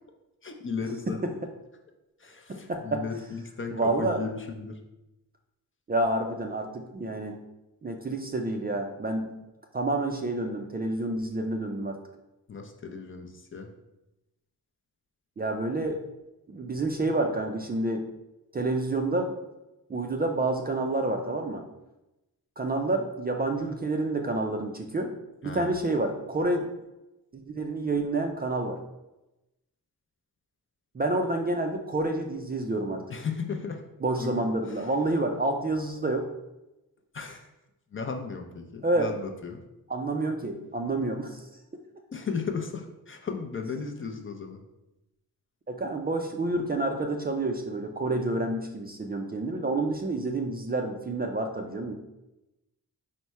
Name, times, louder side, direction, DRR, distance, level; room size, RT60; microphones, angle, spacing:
voice 1, 0.4-1.2 2.2-4.8 12.5-13.7 25.4-25.7 33.1-33.8 34.2-34.4 34.7-34.9 37.1-37.5 37.9-39.6 42.1-44.6, left 5 dB, 35° left, 4 dB, 0.5 m, -35 dB
voice 2, 2.5-3.0 3.7-4.2 5.9-7.4 7.8-9.3 9.7-12.0 15.4-16.0 16.5-18.1 18.5-19.3 19.9-21.6 22.6-25.1 25.4-26.7 27.3-28.8 30.9-33.0 34.0-36.3 38.8-39.1 39.9-41.5 45.7-51.9, right 2 dB, 25° right, 3 dB, 0.4 m, -28 dB
4.1 x 2.1 x 4.5 m, 0.95 s
cardioid pair, 90°, 37 cm